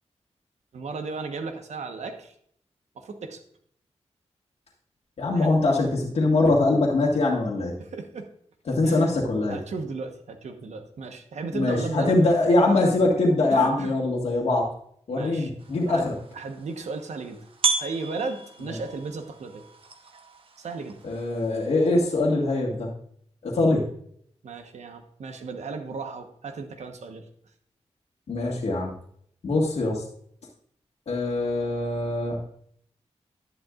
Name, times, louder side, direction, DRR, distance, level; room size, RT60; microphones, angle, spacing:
voice 1, 0.7-2.3 3.0-3.4 5.3-5.5 6.4-6.6 7.8-8.3 8.8-9.1 9.5-12.1 13.5-13.9 15.1-15.5 15.9-16.1 16.3-17.4 17.8-19.6 20.6-21.0 24.4-27.3, right 4 dB, 90° right, 6 dB, 1.2 m, -35 dB
voice 2, 5.2-7.7 8.7-9.6 11.5-14.6 15.1-16.1 18.6-18.7 21.0-22.9 23.4-23.8 28.3-28.9 29.4-30.0 31.1-32.4, left 2 dB, 70° left, -3 dB, 1.8 m, -23 dB
sound 1, 15.6-22.2, right 4 dB, 55° right, 1.0 m, -34 dB
11.5 x 10.5 x 2.5 m, 0.65 s
wide cardioid pair, 175°, 11 cm